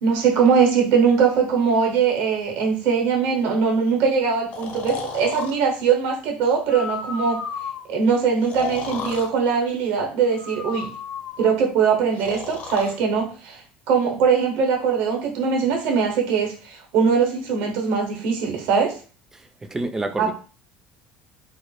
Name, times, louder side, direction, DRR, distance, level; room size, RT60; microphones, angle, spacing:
voice 1, 0.0-7.4 7.9-10.9 11.4-13.6 13.9-19.0 20.2-20.3, right 6 dB, 70° right, 0.7 m, -21 dB
Breathing, 4.5-5.5 6.6-7.8 8.4-9.3 10.3-11.5 12.1-12.9, left 5 dB, 50° left, 0.6 m, -33 dB
voice 2, 19.3-20.3, right 2 dB, 15° right, 0.3 m, -29 dB
2.1 x 2.0 x 3.0 m
supercardioid pair, 115°, 4 cm